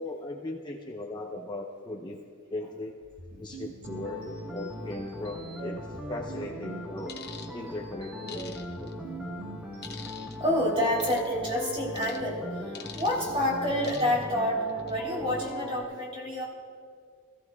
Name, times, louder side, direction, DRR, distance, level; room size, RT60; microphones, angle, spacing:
voice 1, 0.0-2.2 2.5-2.9 3.4-7.1 7.5-8.9, left 2 dB, 20° left, -1 dB, 0.8 m, -38 dB
sound 1, 3.0-11.3, right 4 dB, 50° right, 1.1 m, -47 dB
sound 2, 3.8-15.8, equal, 5° right, 1.4 m, -40 dB
sound 3, 7.1-7.5 8.3-8.9 9.8-10.4 11.0-11.3 12.0-12.2 12.7-13.3 13.8-14.2 14.7-14.9, left 7 dB, 50° left, 1.0 m, -44 dB
voice 2, 10.4-16.5, left 1 dB, 25° right, -3 dB, 3.3 m, -28 dB
24.5 x 15.5 x 2.3 m, 2.2 s
head